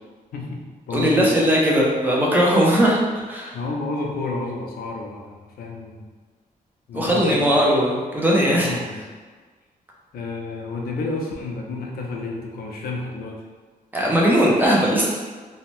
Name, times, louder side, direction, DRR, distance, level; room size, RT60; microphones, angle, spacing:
voice 1, 0.3-1.4 3.5-6.1 6.9-7.5 8.5-9.0 10.1-13.5, left 3 dB, 85° left, 0 dB, 0.5 m, -30 dB
voice 2, 0.9-3.0 3.3-3.5 6.9-8.7 13.9-15.1, equal, 10° right, -4 dB, 0.4 m, -18 dB
2.7 x 2.1 x 3.0 m, 1.4 s
wide cardioid pair, 160°, 15 cm